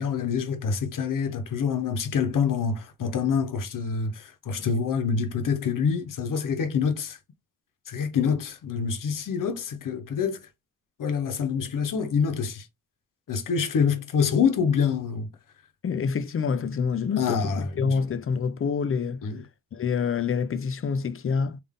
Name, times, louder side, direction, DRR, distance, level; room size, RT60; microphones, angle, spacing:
voice 1, 0.0-7.2 7.9-10.5 11.0-12.7 13.3-15.3 17.2-18.0 19.2-19.4, left 6 dB, 60° left, 0.9 m, -26 dB
voice 2, 15.8-19.2 19.7-21.6, left 6 dB, 40° left, 0.5 m, -27 dB
3.6 x 2.6 x 3.5 m
cardioid pair, 95°, 36 cm